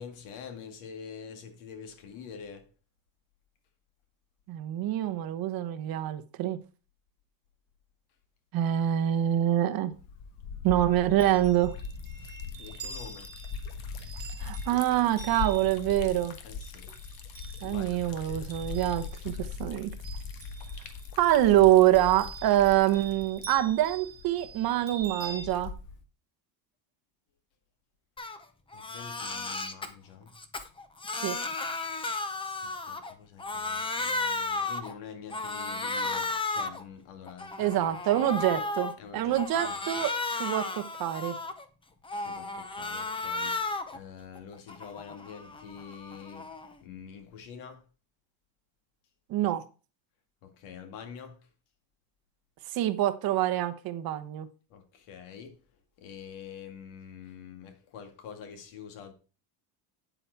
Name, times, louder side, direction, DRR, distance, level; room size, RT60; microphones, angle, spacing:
voice 1, 0.0-2.7 12.2-13.3 16.4-16.9 17.6-18.4 28.7-30.3 32.6-37.9 38.1-38.5 39.0-39.8 42.1-43.6 43.9-46.5 46.8-47.8 50.4-51.4 54.7-55.6 56.0-59.1, left 7 dB, 80° left, 2.4 m, -46 dB
voice 2, 4.5-6.6 8.5-9.9 10.6-11.7 14.4-16.4 17.6-19.9 21.2-25.7 31.2-31.4 37.6-40.1 40.4-41.4 49.3-49.6 52.7-54.5, right 13 dB, 45° right, 1.0 m, -25 dB
Liquid, 9.9-26.0, left 5 dB, 50° left, 1.4 m, -40 dB
Chime, 10.9-19.4 19.8-21.1 21.9-25.5, right 5 dB, 20° right, 2.2 m, -46 dB
Crying sobbing, 28.2-28.4 28.7-29.9 30.3-33.1 33.4-34.9 35.3-36.8 37.3-38.9 39.3-41.6 42.0-44.0 44.4-46.7, left 3 dB, 10° left, 0.6 m, -34 dB
9.3 x 7.9 x 4.6 m
cardioid pair, 175°, 48 cm